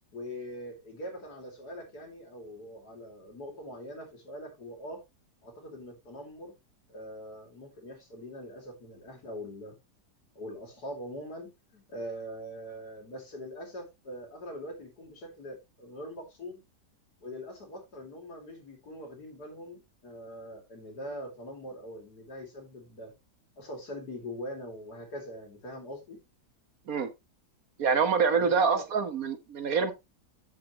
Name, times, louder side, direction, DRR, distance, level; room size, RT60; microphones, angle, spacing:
voice 1, 0.1-5.0 5.4-6.5 6.9-9.7 10.3-16.6 17.2-23.1 23.6-26.2 28.4-28.8, equal, 70° left, 3.1 m, -42 dB
voice 2, 27.8-29.9, right 5 dB, 60° right, 1.5 m, -26 dB
8.6 x 7.7 x 3.0 m
omnidirectional pair, 1.8 m